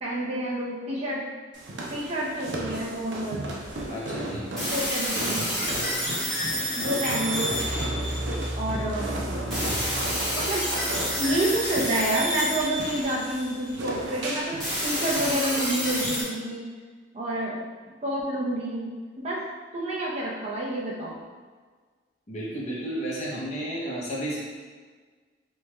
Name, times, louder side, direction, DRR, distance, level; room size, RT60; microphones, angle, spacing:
voice 1, 0.0-1.2 1.9-3.4 4.7-6.3 6.8-7.5 8.5-9.1 10.3-10.6 11.1-16.6 17.1-17.6 18.0-18.9 19.2-19.4 19.7-21.1, right 1 dB, 35° right, -6 dB, 0.7 m, -29 dB
sound 1, 1.5-16.2, right 1 dB, 80° right, 0.5 m, -35 dB
voice 2, 3.9-4.6 13.9-14.1 22.3-24.4, right 1 dB, 40° left, -6 dB, 0.6 m, -33 dB
sound 2, 4.6-8.8 9.5-13.7 14.6-16.2, equal, ahead, 1.0 m, -29 dB
sound 3, 7.5-12.7, equal, 55° right, 1.3 m, -36 dB
3.3 x 2.3 x 3.1 m, 1.5 s
head